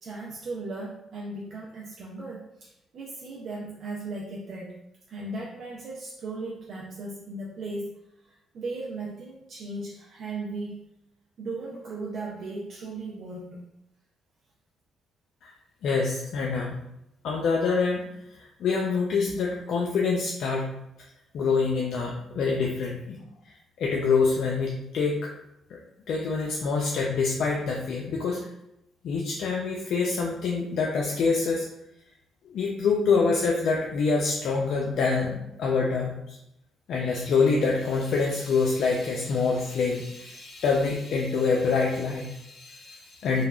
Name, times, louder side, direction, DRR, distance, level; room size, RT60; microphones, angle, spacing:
voice 1, 0.0-4.8 5.1-7.9 8.2-10.8 11.4-13.6, right 2 dB, 60° right, -3 dB, 0.4 m, -37 dB
voice 2, 15.8-16.8 17.2-18.0 18.3-20.7 21.3-23.2 23.5-25.3 25.7-25.8 26.1-28.4 29.0-31.7 32.5-36.4 36.9-43.4, left 4 dB, 70° left, -1 dB, 0.3 m, -26 dB
3.0 x 2.2 x 2.2 m, 0.83 s
cardioid pair, 90°, 0 cm